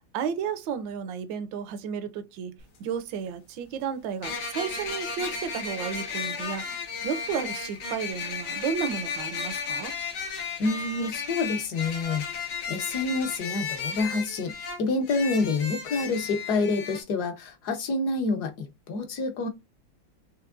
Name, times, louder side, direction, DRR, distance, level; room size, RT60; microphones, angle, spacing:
voice 1, 0.1-6.6 7.0-9.9, right 7 dB, 70° right, 1.4 m, -32 dB
sound 1, 2.6-2.7 4.2-17.0, left 5 dB, 90° left, 2.2 m, -34 dB
voice 2, 10.6-12.2 12.7-14.5 14.8-19.5, left 3 dB, 60° left, 1.2 m, -28 dB
5.8 x 3.3 x 2.4 m
omnidirectional pair, 2.2 m